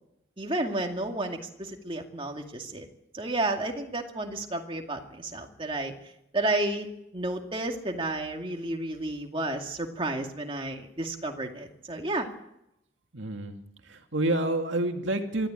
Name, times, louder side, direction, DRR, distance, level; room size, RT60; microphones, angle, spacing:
voice 1, 0.4-2.9 3.1-5.9 6.3-6.9 7.1-12.3, right 2 dB, 25° right, 3 dB, 2.3 m, -31 dB
voice 2, 13.1-13.6 13.8-15.5, right 1 dB, 75° right, 5 dB, 2.1 m, -28 dB
24.0 x 14.0 x 9.0 m, 0.82 s
head